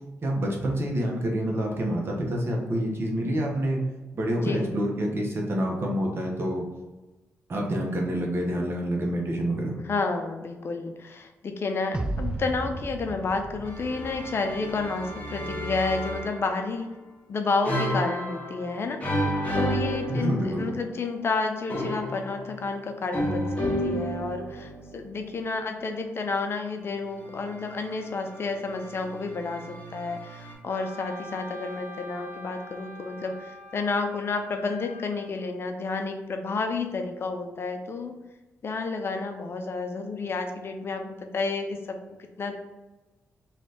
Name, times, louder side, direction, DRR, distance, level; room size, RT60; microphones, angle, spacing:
voice 1, 0.2-3.8 4.1-6.6 7.5-9.8 20.1-20.7, right 1 dB, 50° right, -1 dB, 1.2 m, -27 dB
voice 2, 4.4-4.7 9.8-16.9 17.3-19.0 19.5-38.2 38.6-42.5, left 3 dB, 50° left, 5 dB, 0.6 m, -30 dB
sound 1, 11.9-15.2, right 2 dB, 15° right, 0.4 m, -35 dB
sound 2, 13.6-16.8 17.6-20.8 21.7-25.1 27.1-30.5, equal, 25° left, 1.5 m, -32 dB
Wind instrument woodwind instrument, 30.7-35.3, left 2 dB, 85° right, 1.2 m, -45 dB
3.2 x 3.2 x 4.1 m, 1.1 s
cardioid pair, 80°, 5 cm